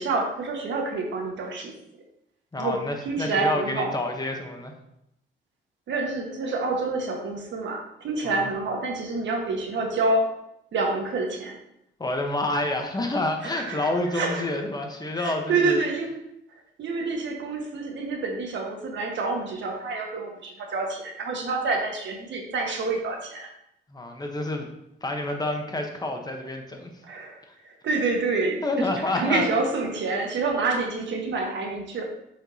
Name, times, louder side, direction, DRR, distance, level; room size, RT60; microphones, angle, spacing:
voice 1, 0.0-1.7 2.6-4.0 5.9-10.3 10.7-11.6 13.4-14.5 15.2-16.1 16.8-23.5 27.0-32.0, right 3 dB, 65° right, 1 dB, 1.4 m, -28 dB
voice 2, 2.5-4.7 8.2-8.5 12.0-15.8 23.9-24.7 25.0-26.9 27.5-27.6 28.6-29.5, left 2 dB, 20° left, 3 dB, 1.0 m, -28 dB
7.3 x 4.9 x 2.8 m, 0.79 s
cardioid pair, 90°, 20 cm